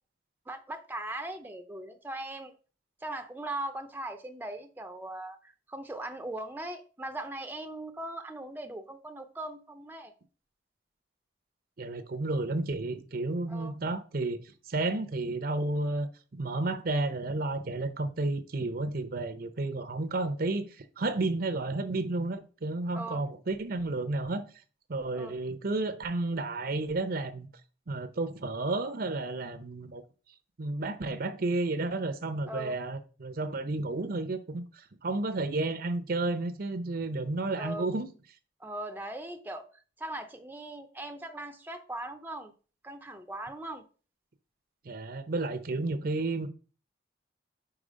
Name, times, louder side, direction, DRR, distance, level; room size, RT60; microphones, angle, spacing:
voice 1, 0.5-2.5 3.0-10.1 13.5-13.7 22.9-23.2 25.2-25.3 32.5-32.8 37.6-37.9 38.6-39.7 40.0-42.5 42.8-43.8, right 1 dB, 10° right, 0.6 m, -39 dB
voice 2, 11.8-24.4 24.9-27.5 27.9-30.0 30.6-38.1 44.8-46.5, right 2 dB, 55° right, 0.7 m, -32 dB
4.9 x 4.7 x 5.1 m
head